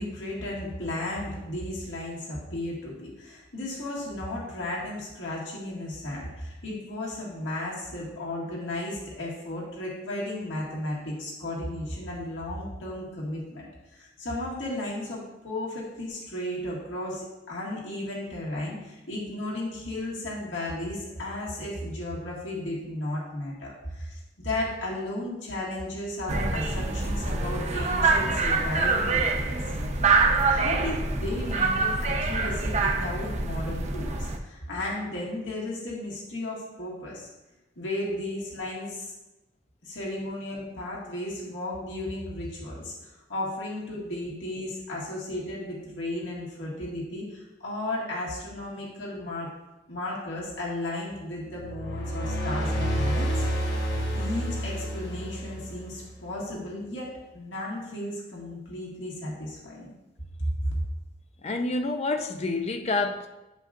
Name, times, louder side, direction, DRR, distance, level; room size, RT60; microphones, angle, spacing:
voice 1, 0.0-29.5 30.5-37.3 37.8-39.1 39.8-49.5 49.9-53.5 54.1-59.9 60.4-60.7, left 1 dB, 90° left, 1.9 m, -34 dB
sound 1, 26.3-34.4, right 3 dB, 35° right, 0.5 m, -25 dB
sound 2, 51.5-56.1, equal, 60° left, 1.3 m, -29 dB
voice 2, 61.4-63.3, left 3 dB, 35° left, 0.5 m, -28 dB
8.7 x 5.1 x 2.5 m
head